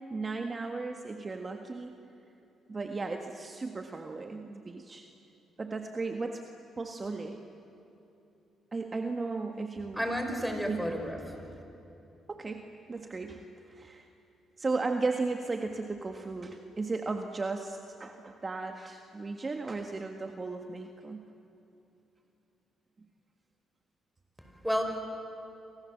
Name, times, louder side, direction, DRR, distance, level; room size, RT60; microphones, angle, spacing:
voice 1, 0.0-1.9 2.7-5.1 5.6-6.4 6.8-7.5 8.7-10.0 10.6-10.9 12.3-14.1 14.6-21.3, right 3 dB, 30° right, 4 dB, 1.6 m, -35 dB
voice 2, 9.9-11.4 24.4-24.8, equal, ahead, 4 dB, 5.2 m, -32 dB
29.5 x 25.5 x 7.5 m, 2.9 s
cardioid pair, 90°, 0 cm